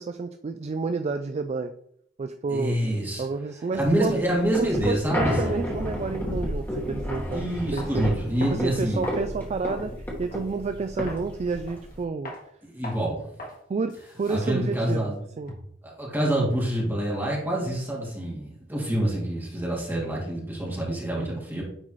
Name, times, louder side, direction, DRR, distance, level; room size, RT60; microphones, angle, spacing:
voice 1, 0.0-1.7 2.2-2.8 3.2-4.2 4.6-7.4 7.7-8.1 8.4-9.9 10.2-12.3 13.7-15.5 21.1-21.4, right 4 dB, 35° right, 8 dB, 0.3 m, -30 dB
voice 2, 2.5-3.2 3.7-5.6 7.3-9.0 12.6-13.2 14.3-15.2 15.8-21.6, right 1 dB, 10° right, -4 dB, 2.0 m, -26 dB
sound 1, 3.9-12.0, equal, 10° left, 1.7 m, -32 dB
sound 2, 7.1-7.3 7.8-8.0 8.4-9.9 10.3-10.5 11.1-11.3 11.7-12.0 12.3-12.4 12.8-13.1 13.4-13.6 13.9-15.8, left 1 dB, 50° left, 1.6 m, -41 dB
9.8 x 4.1 x 3.1 m, 0.70 s
head